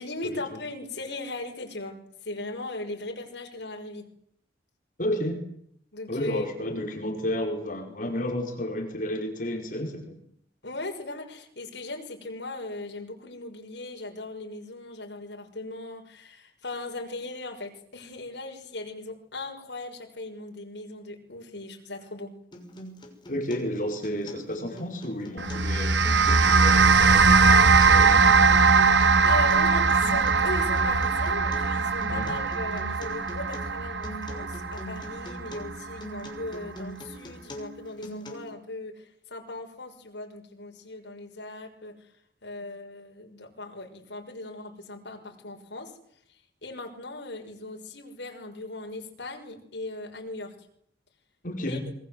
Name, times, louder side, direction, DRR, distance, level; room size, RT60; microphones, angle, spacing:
voice 1, 0.0-4.0 5.9-6.5 10.6-22.4 29.2-42.1 42.4-46.0 46.3-50.6 51.6-51.8, left 2 dB, 80° left, 3 dB, 6.1 m, -38 dB
voice 2, 5.0-5.4 6.1-10.2 23.3-28.7 32.1-32.3 51.4-51.8, left 1 dB, 50° left, 2 dB, 5.3 m, -32 dB
Acoustic guitar, 22.5-38.5, right 1 dB, 25° left, 6.3 m, -42 dB
sound 1, 25.4-35.9, right 4 dB, 85° right, 1.3 m, -21 dB
28.0 x 23.5 x 8.0 m, 0.69 s
head